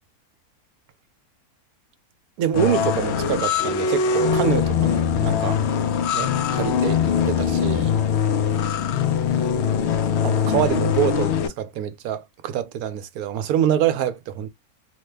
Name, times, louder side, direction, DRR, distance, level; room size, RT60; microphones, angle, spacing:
voice 1, 2.4-5.6 6.1-7.0 7.3-8.0 10.2-14.5, right 10 dB, 75° right, 1.0 m, -25 dB
sound 1, 2.5-11.5, left 7 dB, 70° left, 0.6 m, -22 dB
3.0 x 2.1 x 3.2 m
omnidirectional pair, 1.6 m